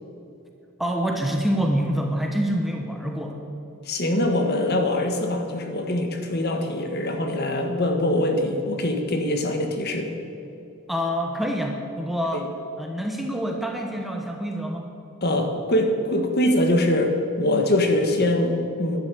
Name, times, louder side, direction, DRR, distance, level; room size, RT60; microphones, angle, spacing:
voice 1, 0.8-3.4 10.9-12.5 12.8-14.9, equal, ahead, 2 dB, 1.1 m, -26 dB
voice 2, 3.8-10.1 12.3-12.4 15.2-19.0, left 1 dB, 45° left, 5 dB, 1.6 m, -23 dB
12.0 x 11.0 x 8.4 m, 2.7 s
head